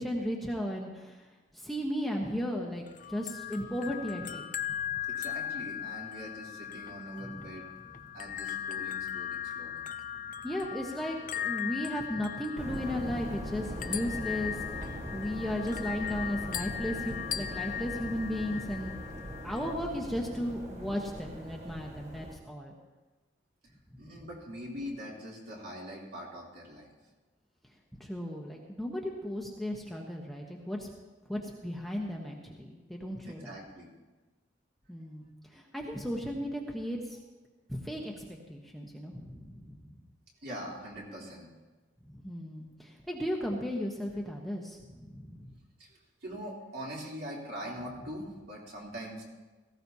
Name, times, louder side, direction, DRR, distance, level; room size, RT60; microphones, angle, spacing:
voice 1, 0.0-5.0 7.2-7.5 7.9-8.0 10.4-22.8 27.9-30.9 31.3-33.6 34.9-37.2 37.7-40.0 42.0-45.6, equal, ahead, -1 dB, 1.0 m, -36 dB
sound 1, 2.9-19.7, left 10 dB, 40° left, 0.5 m, -38 dB
voice 2, 5.1-7.7 8.1-9.8 23.6-23.7 24.0-26.9 33.2-33.9 40.4-41.5 45.8-49.3, equal, 55° right, -4 dB, 3.3 m, -42 dB
sound 2, 12.6-22.4, equal, 35° right, 1.5 m, -41 dB
17.5 x 15.5 x 2.8 m, 1.2 s
head